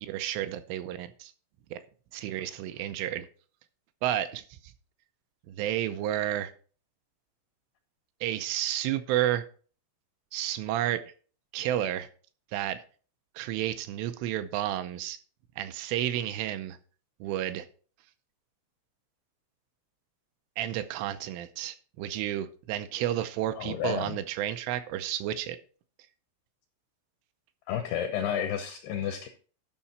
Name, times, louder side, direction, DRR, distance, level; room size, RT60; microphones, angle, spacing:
voice 1, 0.0-1.3 1.7-1.8 2.1-3.3 4.0-4.7 5.5-6.5 8.2-9.5 10.3-11.1 11.5-12.1 12.5-12.8 13.4-15.2 15.6-16.8 17.2-17.7 20.6-25.6, right 12 dB, 85° right, 10 dB, 3.1 m, -31 dB
voice 2, 23.6-24.2 27.7-29.3, left 9 dB, 90° left, 6 dB, 2.3 m, -31 dB
13.0 x 5.7 x 4.2 m, 0.41 s
omnidirectional pair, 5.7 m